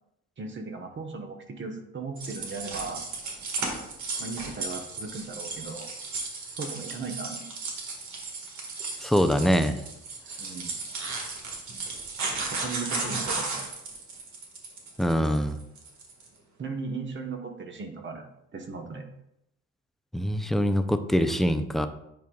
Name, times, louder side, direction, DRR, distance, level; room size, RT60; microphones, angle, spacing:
voice 1, 0.4-3.0 4.2-5.9 6.5-7.5 10.4-10.8 12.4-13.6 16.6-18.3 18.5-19.1, right 4 dB, 40° right, 4 dB, 1.2 m, -37 dB
sound 1, 2.2-16.3, right 3 dB, 70° right, 1.8 m, -35 dB
voice 2, 9.0-9.8 15.0-15.6 20.1-21.9, equal, ahead, 8 dB, 0.5 m, -24 dB
9.3 x 5.2 x 2.4 m, 0.81 s
cardioid pair, 90°, 30 cm